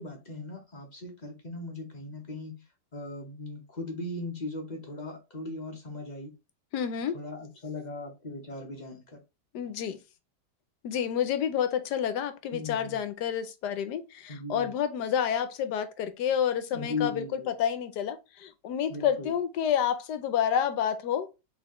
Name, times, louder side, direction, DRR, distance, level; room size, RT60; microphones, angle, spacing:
voice 1, 0.0-2.6 2.9-6.3 7.1-9.0 12.5-13.0 14.3-14.7 16.7-17.5 18.9-19.3, left 2 dB, 30° left, 0.9 m, -38 dB
voice 2, 6.7-7.2 9.5-10.0 10.8-21.3, left 9 dB, 80° left, 1.2 m, -29 dB
4.1 x 3.5 x 3.0 m
omnidirectional pair, 1.9 m